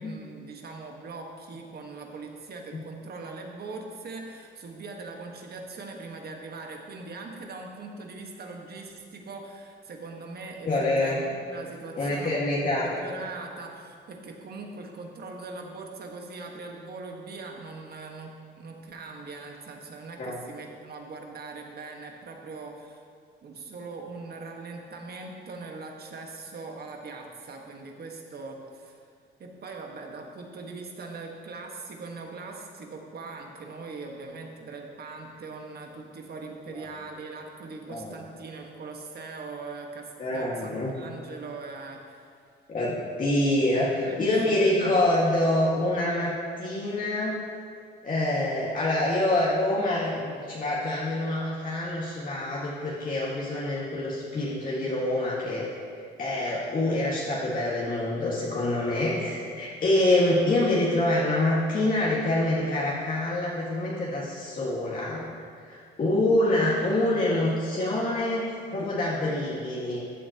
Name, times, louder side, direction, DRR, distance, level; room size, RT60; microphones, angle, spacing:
voice 1, 0.0-10.7 11.0-12.4 12.8-23.0 23.4-29.0 29.4-42.3 43.7-44.8, right 3 dB, 50° right, 1 dB, 1.5 m, -41 dB
voice 2, 10.6-11.2 12.0-12.9 20.2-20.3 36.8-36.9 37.9-38.2 40.2-40.9 42.7-47.4 48.0-55.7 56.2-70.0, left 1 dB, 45° left, -7 dB, 1.9 m, -26 dB
14.5 x 8.5 x 3.0 m, 2.2 s
cardioid pair, 90°, 20 cm